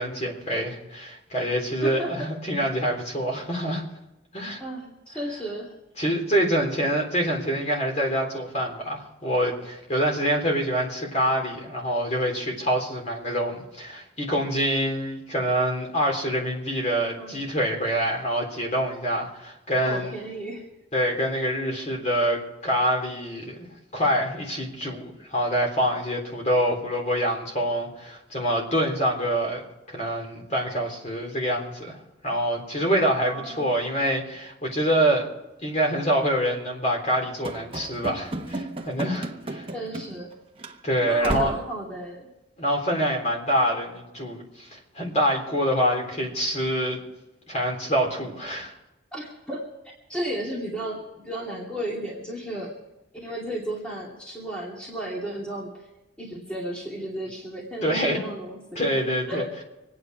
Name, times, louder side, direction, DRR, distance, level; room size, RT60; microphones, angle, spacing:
voice 1, 0.0-3.8 4.3-4.6 6.0-20.1 20.9-23.6 23.9-29.6 29.9-32.0 32.2-35.3 35.6-39.7 40.8-41.6 42.6-47.0 47.5-48.7 57.8-58.2 58.7-59.4, equal, 35° left, 0 dB, 3.6 m, -26 dB
voice 2, 1.8-2.3 4.6-5.7 16.9-17.4 19.8-20.7 33.3-33.8 39.7-40.3 41.0-42.3 49.1-49.7 50.1-52.7 53.2-55.9 56.2-58.8 59.3-59.5, right 1 dB, 5° left, -4 dB, 2.6 m, -34 dB
Run / Slam, 37.4-40.3 40.6-40.8 41.2-41.7, right 2 dB, 25° right, 1.0 m, -33 dB
26.0 x 9.5 x 4.7 m, 0.95 s
head